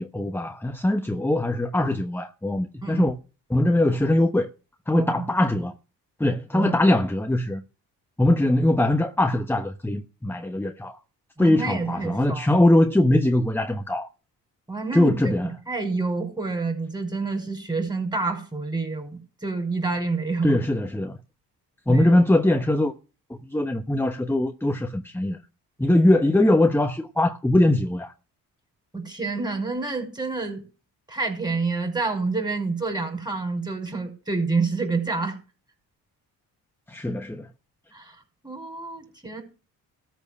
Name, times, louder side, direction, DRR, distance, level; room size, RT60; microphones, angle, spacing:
voice 1, 0.0-3.1 3.5-4.5 4.9-5.7 6.2-7.6 8.2-11.0 11.4-14.1 14.9-15.5 20.4-21.2 21.9-22.9 23.4-25.4 25.8-28.1 36.9-37.5, left 1 dB, 5° left, 1.1 m, -21 dB
voice 2, 4.9-5.2 6.5-6.7 11.4-12.5 14.7-20.6 21.9-22.2 28.9-30.6 31.1-35.4 37.9-38.2 38.4-39.4, right 3 dB, 10° right, 5.3 m, -28 dB
13.5 x 4.6 x 8.5 m
supercardioid pair, 60°, 42 cm